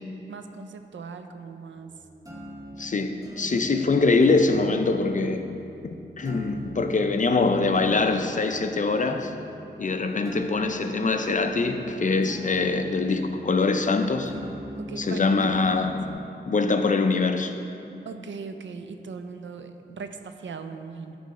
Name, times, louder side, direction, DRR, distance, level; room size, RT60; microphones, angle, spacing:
voice 1, 0.3-1.9 3.5-3.6 14.8-15.2 18.1-21.2, right 5 dB, 80° right, 8 dB, 0.4 m, -39 dB
sound 1, 1.8-16.1, equal, 20° right, 0.9 m, -40 dB
voice 2, 2.8-5.5 5.8-9.3 9.8-14.3 15.0-16.0 16.4-17.5, left 3 dB, 40° left, 6 dB, 0.5 m, -23 dB
9.2 x 3.2 x 5.2 m, 2.7 s
wide cardioid pair, 70°, 19 cm